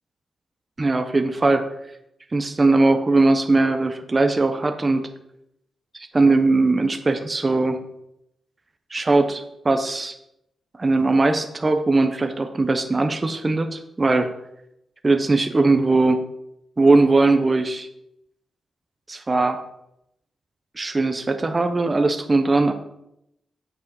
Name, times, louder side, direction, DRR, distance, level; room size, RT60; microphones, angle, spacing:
voice 1, 0.8-1.6 2.3-5.0 5.9-7.8 8.9-10.1 10.8-14.3 15.0-16.3 16.8-17.9 19.1-19.6 20.8-22.7, right 3 dB, 25° right, 6 dB, 0.9 m, -20 dB
8.3 x 7.2 x 5.4 m, 0.80 s
cardioid pair, 95°, 0 cm